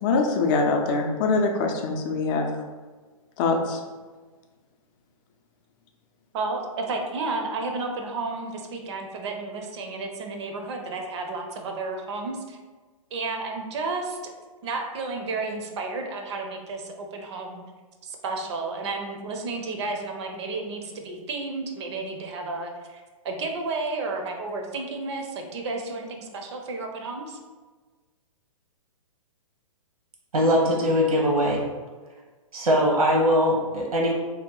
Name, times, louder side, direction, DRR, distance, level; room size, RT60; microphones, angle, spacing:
voice 1, 0.0-2.5 3.4-3.8, left 3 dB, 35° left, 3 dB, 0.5 m, -23 dB
voice 2, 6.3-12.6 13.1-14.3 14.6-17.6 18.0-27.4, right 3 dB, 50° right, 3 dB, 0.5 m, -32 dB
voice 3, 30.3-31.6 32.5-34.1, equal, 85° right, -1 dB, 0.9 m, -21 dB
2.8 x 2.1 x 3.7 m, 1.4 s
hypercardioid pair, 125°, 18 cm